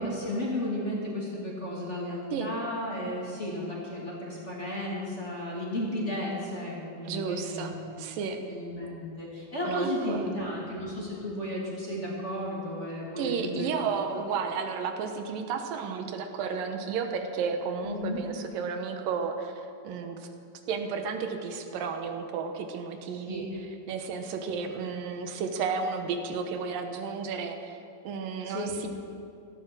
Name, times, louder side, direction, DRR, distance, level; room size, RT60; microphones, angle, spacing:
voice 1, 0.0-7.9 8.5-13.8 14.1-14.2 17.8-18.2 23.3-23.5 28.4-28.8, left 1 dB, 20° left, -4 dB, 2.5 m, -34 dB
voice 2, 7.0-8.4 9.6-10.5 13.2-20.3 20.7-23.4 23.9-27.8 28.0-28.9, right 5 dB, 85° right, 6 dB, 2.8 m, -33 dB
16.5 x 13.0 x 6.2 m, 2.6 s
omnidirectional pair, 3.8 m